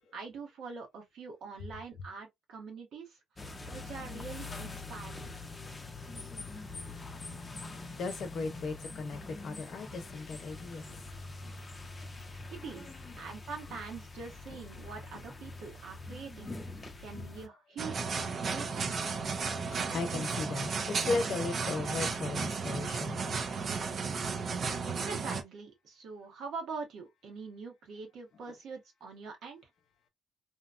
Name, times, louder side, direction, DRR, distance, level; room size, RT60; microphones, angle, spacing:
voice 1, 0.1-3.2 3.7-5.3 12.5-12.9 13.2-16.5 17.0-18.8 25.0-29.6, right 5 dB, 75° right, 1.1 m, -44 dB
sound 1, 3.4-17.5, left 3 dB, 25° left, 0.6 m, -44 dB
voice 2, 6.5-6.9 7.2-7.3 7.6-11.0 11.4-11.6 13.2-13.3 14.5-14.6 17.1-17.2 19.9-23.4, left 3 dB, 65° left, 0.7 m, -37 dB
sound 2, 17.8-25.4, right 5 dB, 50° right, 0.5 m, -34 dB
2.8 x 2.2 x 2.4 m
cardioid pair, 90°, 0 cm